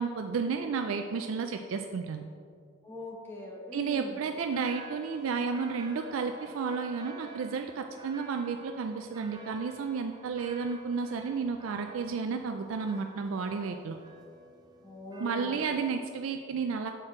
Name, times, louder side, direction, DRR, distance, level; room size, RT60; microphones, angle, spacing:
voice 1, 0.0-2.2 3.7-14.0 15.2-16.9, right 5 dB, 80° right, 6 dB, 0.4 m, -32 dB
voice 2, 2.8-4.2 14.8-15.8, left 1 dB, 10° left, -3 dB, 1.1 m, -42 dB
sound 1, 4.5-15.9, right 3 dB, 20° right, 0.5 m, -50 dB
7.6 x 4.4 x 4.9 m, 2.2 s
head